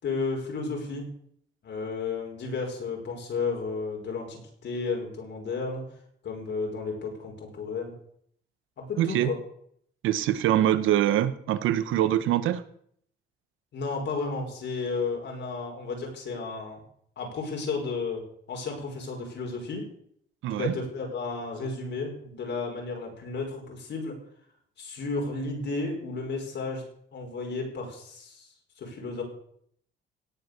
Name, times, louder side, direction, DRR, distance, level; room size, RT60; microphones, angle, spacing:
voice 1, 0.0-1.1 1.6-5.8 6.2-7.9 8.8-9.4 13.7-16.8 17.2-18.2 18.5-19.8 20.5-24.2 24.8-26.8 27.1-29.2, left 4 dB, 65° left, 1 dB, 5.2 m, -33 dB
voice 2, 9.0-9.3 10.0-12.6 20.4-20.7, right 12 dB, 90° right, 14 dB, 1.1 m, -24 dB
17.5 x 8.3 x 6.7 m, 0.66 s
cardioid pair, 90°, 20 cm